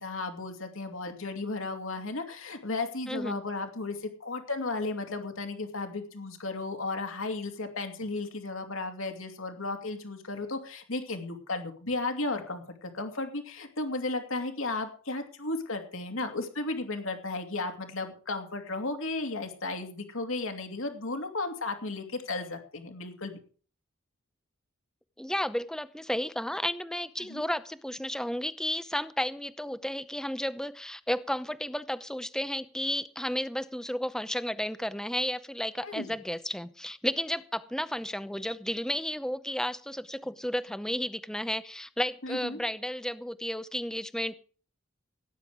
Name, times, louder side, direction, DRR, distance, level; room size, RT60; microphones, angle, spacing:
voice 1, 0.0-23.4 27.3-27.4 35.8-36.2 42.2-42.6, left 3 dB, 75° left, 5 dB, 2.7 m, -34 dB
voice 2, 3.1-3.4 25.2-44.3, left 1 dB, 5° left, 14 dB, 0.7 m, -33 dB
17.5 x 9.7 x 4.9 m, 0.41 s
head